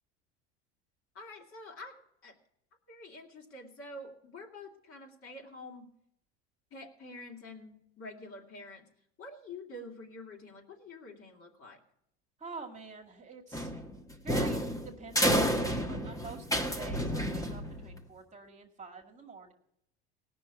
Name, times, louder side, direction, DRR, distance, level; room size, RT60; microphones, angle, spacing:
voice 1, 1.1-2.0 2.2-2.3 2.9-5.9 6.7-8.9 9.2-11.8, left 2 dB, 45° left, 1 dB, 2.8 m, -47 dB
voice 2, 12.4-13.9 14.2-16.5 16.7-19.5, right 4 dB, 20° right, 2 dB, 1.9 m, -47 dB
sound 1, 13.5-18.0, equal, 10° left, 1.5 m, -30 dB
18.0 x 6.2 x 8.2 m, 0.77 s
hypercardioid pair, 90°, 31 cm